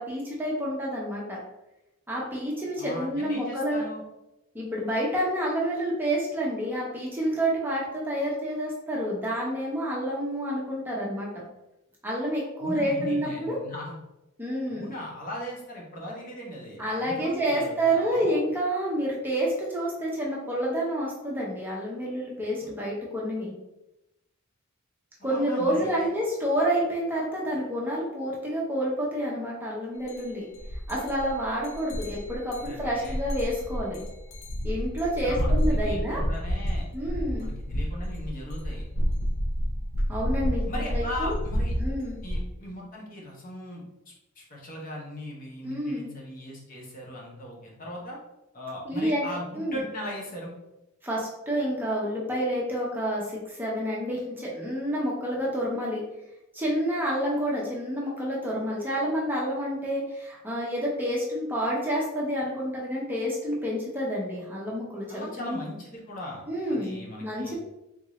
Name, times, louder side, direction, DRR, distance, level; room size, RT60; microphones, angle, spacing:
voice 1, 0.0-1.4 2.1-3.8 4.5-11.4 12.0-13.6 14.4-14.9 16.8-23.5 25.2-30.4 30.9-34.0 34.6-36.2 36.9-37.5 40.1-41.4 41.8-42.2 45.6-46.1 48.9-49.3 49.5-49.8 51.0-56.0 56.5-65.6 66.5-67.5, equal, 10° right, -4 dB, 0.7 m, -29 dB
voice 2, 2.8-4.0 12.6-13.9 14.7-18.4 25.2-26.1 32.6-33.2 35.2-36.8 37.4-38.8 40.7-41.7 42.2-48.2 48.5-50.5 65.1-66.4 66.7-67.5, left 1 dB, 40° left, -2 dB, 0.9 m, -38 dB
sound 1, 30.1-30.2 30.6-42.4, equal, 65° left, 0.6 m, -29 dB
3.6 x 2.6 x 3.0 m, 0.92 s
head